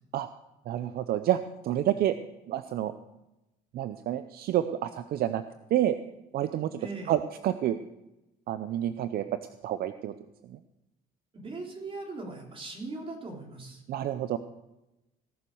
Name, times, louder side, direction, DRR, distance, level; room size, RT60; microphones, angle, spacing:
voice 1, 0.7-2.2 2.5-2.9 3.7-5.4 5.7-6.0 6.3-6.8 7.1-7.8 8.5-9.2 9.6-10.1 10.5-10.6 13.9-14.4, right 12 dB, 65° right, 11 dB, 0.6 m, -28 dB
voice 2, 6.8-7.2 11.3-13.8, right 3 dB, 30° right, 0 dB, 3.6 m, -39 dB
17.5 x 7.0 x 6.4 m, 0.97 s
cardioid pair, 110°, 17 cm